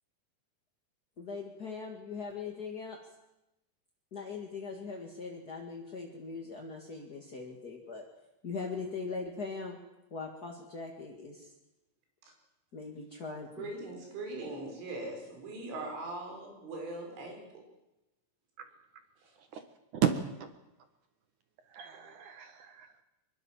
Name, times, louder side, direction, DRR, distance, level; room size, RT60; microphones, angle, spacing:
voice 1, 1.2-3.0 4.1-8.0 8.4-9.8 10.1-11.5 12.7-13.7, left 4 dB, 40° left, 1.4 m, -40 dB
voice 2, 13.6-17.6 19.2-19.3, right 2 dB, 85° right, 7.8 m, -41 dB
voice 3, 21.7-23.0, right 9 dB, 60° right, 2.2 m, -33 dB
23.5 x 22.5 x 7.5 m
omnidirectional pair, 5.4 m